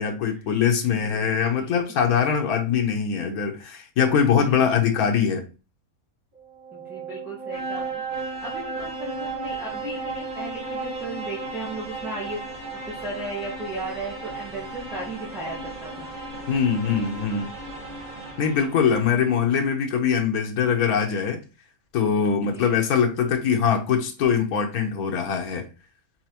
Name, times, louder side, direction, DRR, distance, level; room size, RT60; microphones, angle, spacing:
voice 1, 0.0-5.4 16.5-17.5 18.4-21.4 21.9-25.7, left 7 dB, 80° left, 1.4 m, -22 dB
voice 2, 0.9-1.7 4.3-4.7 6.7-12.4 12.7-16.1 22.4-22.8, right 2 dB, ahead, 1.3 m, -36 dB
sound 1, 6.4-19.2, right 3 dB, 35° right, 1.3 m, -35 dB
4.4 x 4.0 x 2.8 m
omnidirectional pair, 1.5 m